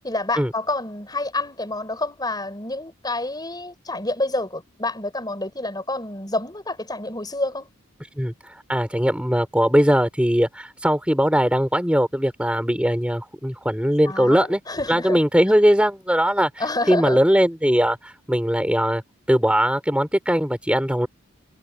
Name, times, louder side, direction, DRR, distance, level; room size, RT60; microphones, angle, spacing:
voice 1, 0.0-7.7 14.1-15.2 16.6-17.2, left 2 dB, 20° left, 5.4 m, -28 dB
voice 2, 8.2-14.6 14.9-16.5 16.9-19.0 19.3-21.1, equal, 5° right, 4.0 m, -20 dB
head